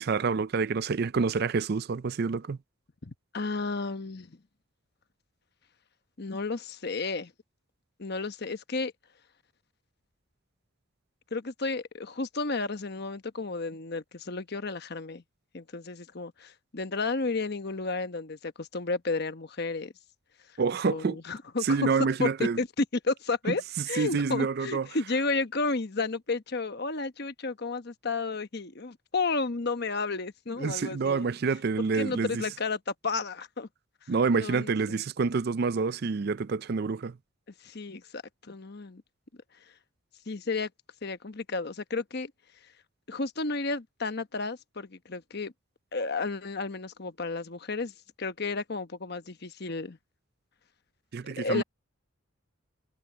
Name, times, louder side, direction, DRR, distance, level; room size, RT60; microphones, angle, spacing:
voice 1, 0.0-2.6 20.6-21.2 21.6-22.6 23.9-24.9 30.6-32.4 34.1-37.2 51.1-51.6, right 4 dB, 50° right, 0.4 m, -27 dB
voice 2, 3.0-4.4 6.2-7.3 8.0-8.9 11.3-15.2 15.5-19.9 20.5-20.6 20.9-21.8 22.2-31.3 31.9-33.7 34.0-35.0 37.6-39.0 39.7-39.8 40.3-40.7 41.0-42.3 42.6-42.7 43.1-45.5 45.9-50.0 51.4-51.6, left 3 dB, 55° left, 1.1 m, -32 dB
head